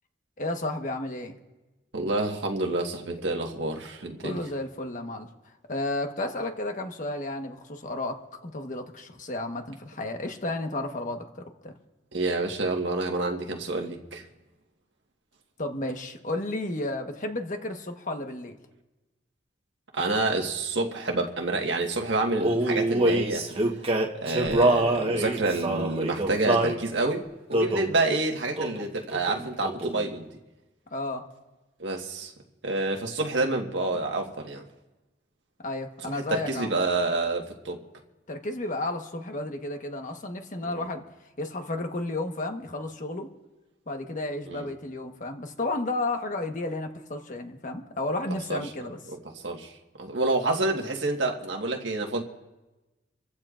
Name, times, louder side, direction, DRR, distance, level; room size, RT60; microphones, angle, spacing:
voice 1, 0.4-1.4 4.2-5.3 5.7-11.7 15.6-18.6 30.9-31.3 35.6-36.8 38.3-41.0 41.4-43.3 43.9-49.0, left 2 dB, 45° left, 4 dB, 1.3 m, -32 dB
voice 2, 1.9-4.4 12.1-14.2 19.9-23.4 24.2-30.3 31.8-32.3 32.6-34.6 36.1-37.8 40.6-40.8 44.5-44.7 48.5-48.6 49.4-49.7 50.0-52.2, right 2 dB, 85° right, 2 dB, 1.6 m, -28 dB
Male singing, 22.4-26.8 27.5-27.9 28.6-28.9 29.1-30.1, right 1 dB, 35° right, 1.3 m, -25 dB
27.5 x 15.0 x 2.5 m, 1.1 s
head